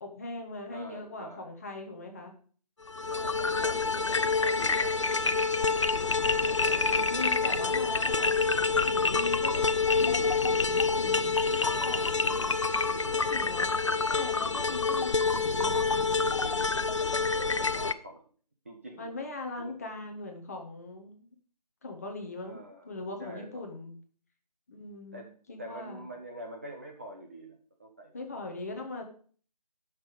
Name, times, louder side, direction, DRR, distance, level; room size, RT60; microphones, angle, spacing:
voice 1, 0.0-2.3 6.9-8.3 8.8-9.7 10.0-12.1 13.1-13.7 14.0-16.6 18.9-21.3 21.8-23.9 24.7-26.1 28.1-29.0, left 2 dB, 25° left, 3 dB, 1.2 m, -40 dB
voice 2, 0.7-1.5 3.1-5.4 5.7-8.0 9.1-9.7 11.0-11.4 12.1-13.3 17.0-18.2 18.6-19.1 19.6-19.7 22.4-22.9 23.2-23.7 25.1-25.3 25.6-28.3, right 1 dB, 20° right, 1 dB, 0.7 m, -47 dB
sound 1, 2.9-17.9, left 4 dB, 45° left, 0.5 m, -27 dB
11.5 x 6.0 x 5.1 m, 0.43 s
figure-of-eight pair, 170°, 21 cm